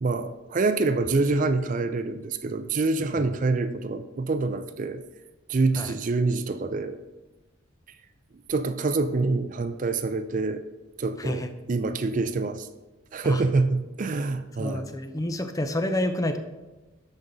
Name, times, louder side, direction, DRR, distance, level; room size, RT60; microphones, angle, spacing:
voice 1, 0.0-5.0 5.5-7.0 8.5-10.6 11.0-12.7 13.1-14.9, right 3 dB, 40° right, 10 dB, 0.4 m, -26 dB
voice 2, 11.2-11.5 13.2-13.4 14.6-16.4, left 1 dB, 15° left, 8 dB, 0.5 m, -28 dB
12.5 x 5.2 x 4.0 m, 1.1 s
head